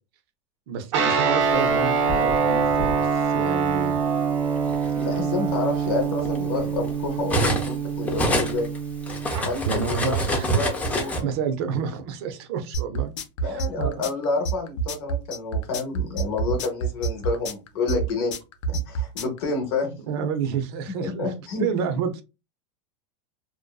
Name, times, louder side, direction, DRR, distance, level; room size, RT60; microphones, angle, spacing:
voice 1, 0.7-4.0 9.6-10.6 11.2-13.1 13.4-14.0 20.0-21.3 21.6-22.2, right 7 dB, 55° right, 8 dB, 0.6 m, -29 dB
Guitar, 0.9-9.4, right 5 dB, 90° right, 0.8 m, -24 dB
Cutlery silverware, 1.7-3.0 3.9-4.1 4.5-7.8 8.1-11.2, right 1 dB, 10° left, 0.4 m, -27 dB
voice 2, 4.9-8.7 9.4-11.1 13.4-18.3 18.7-20.3 21.0-21.7, left 3 dB, 55° left, 3 dB, 0.8 m, -29 dB
sound 1, 12.7-19.4, right 5 dB, 90° left, 0.6 m, -27 dB
2.6 x 2.1 x 2.2 m, 0.28 s
supercardioid pair, 150°, 15 cm